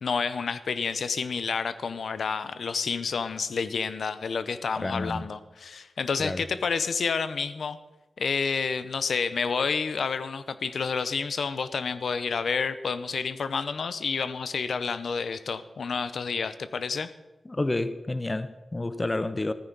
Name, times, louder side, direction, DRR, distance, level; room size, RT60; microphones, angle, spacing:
voice 1, 0.0-7.8 8.2-17.1, left 5 dB, 75° left, 0.6 m, -29 dB
voice 2, 4.8-5.3 6.2-6.4 17.5-19.5, left 2 dB, 20° left, 0.5 m, -29 dB
15.0 x 14.0 x 4.0 m
wide cardioid pair, 175°, 0 cm